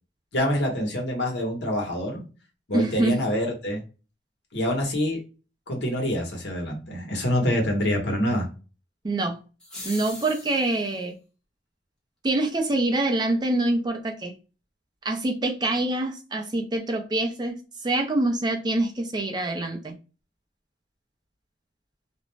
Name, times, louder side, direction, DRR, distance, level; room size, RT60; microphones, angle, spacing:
voice 1, 0.3-2.2 2.7-3.8 4.5-5.2 5.7-8.5, equal, 70° left, 1.0 m, -26 dB
voice 2, 2.7-3.2 9.0-9.4 9.8-11.2 12.2-14.4 15.0-19.9, right 2 dB, 25° right, 0.5 m, -25 dB
sound 1, 9.6-10.9, left 2 dB, 5° left, 0.8 m, -40 dB
2.5 x 2.1 x 3.1 m
head